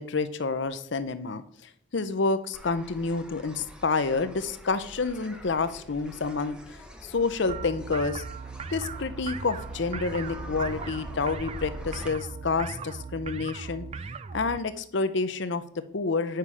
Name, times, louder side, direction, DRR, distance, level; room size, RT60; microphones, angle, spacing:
voice 1, 0.0-8.2 8.7-13.8 14.3-16.4, left 4 dB, 60° left, 12 dB, 0.6 m, -29 dB
sound 1, 2.5-12.1, equal, 5° right, 0.7 m, -45 dB
sound 2, 7.5-14.6, right 5 dB, 30° right, 0.3 m, -38 dB
9.1 x 5.6 x 4.8 m, 0.69 s
head